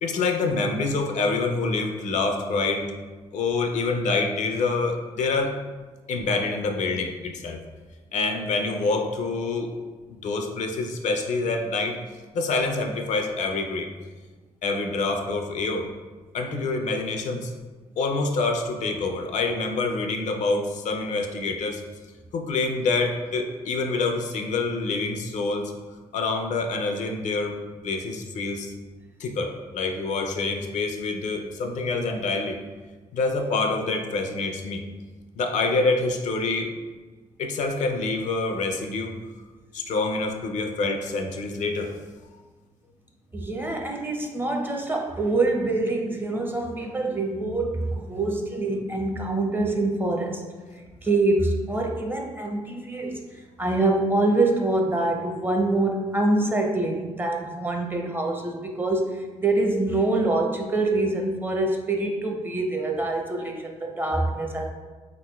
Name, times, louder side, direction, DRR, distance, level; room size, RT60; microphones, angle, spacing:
voice 1, 0.0-2.9 3.3-5.6 6.1-7.6 8.1-9.7 10.1-12.0 12.3-13.9 14.6-15.9 16.3-17.5 18.0-21.8 22.3-25.7 26.1-27.5 27.8-28.7 29.2-32.6 33.1-34.8 35.4-36.7 37.4-39.1 39.7-41.9, left 3 dB, 70° left, 4 dB, 0.4 m, -26 dB
voice 2, 43.3-50.4 51.0-64.7, right 2 dB, 15° right, 2 dB, 0.5 m, -25 dB
3.5 x 2.9 x 2.2 m, 1.3 s
supercardioid pair, 55°, 13 cm